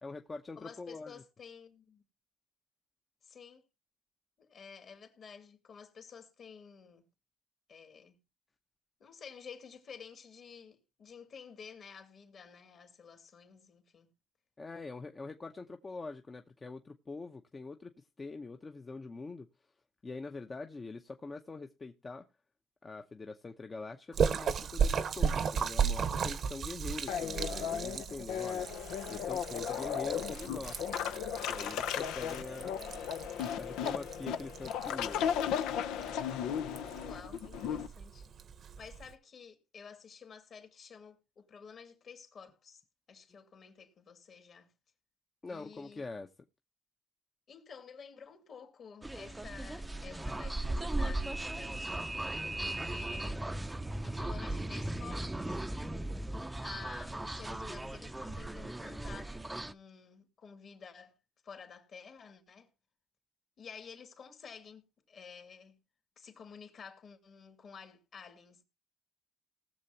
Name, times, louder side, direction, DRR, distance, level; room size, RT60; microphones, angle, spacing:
voice 1, 0.0-1.2 14.6-17.9 18.2-19.5 20.0-22.3 22.8-28.7 29.1-30.8 31.5-32.8 33.6-35.4 45.4-46.3, left 3 dB, 25° left, 0.8 m, -44 dB
voice 2, 0.6-2.0 3.2-3.6 4.4-7.0 7.7-8.2 9.0-14.1 32.9-33.0 37.0-38.3 38.8-42.8 43.1-44.7 45.4-46.1 47.5-51.9 52.5-53.6 54.0-55.6 56.6-61.2 61.4-62.7 63.6-65.8 66.2-68.6, left 6 dB, 50° left, 2.6 m, -51 dB
Splash splatter, 24.1-39.1, right 7 dB, 55° right, 0.9 m, -36 dB
sound 1, 27.1-37.9, left 9 dB, 85° left, 0.7 m, -35 dB
sound 2, 49.0-59.7, right 1 dB, 10° right, 0.6 m, -37 dB
19.0 x 6.8 x 2.8 m
cardioid pair, 95°, 0 cm